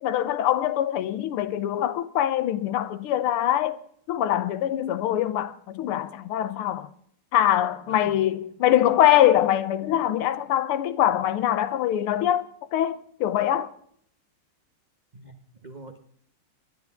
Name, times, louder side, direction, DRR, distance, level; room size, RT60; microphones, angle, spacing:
voice 1, 0.0-3.8 4.1-6.9 7.3-12.5 12.7-13.7, left 12 dB, 90° left, 1.7 m, -23 dB
voice 2, 15.1-16.0, right 4 dB, 65° right, 0.4 m, -43 dB
24.5 x 10.5 x 3.5 m
omnidirectional pair, 2.4 m